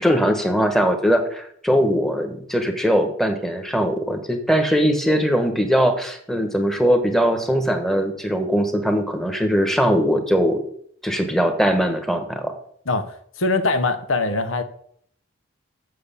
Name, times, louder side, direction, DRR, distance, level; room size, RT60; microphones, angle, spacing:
voice 1, 0.0-10.6 11.0-12.5, equal, ahead, 6 dB, 1.2 m, -20 dB
voice 2, 13.4-14.6, left 3 dB, 85° left, 9 dB, 1.1 m, -22 dB
7.8 x 6.7 x 6.9 m, 0.64 s
head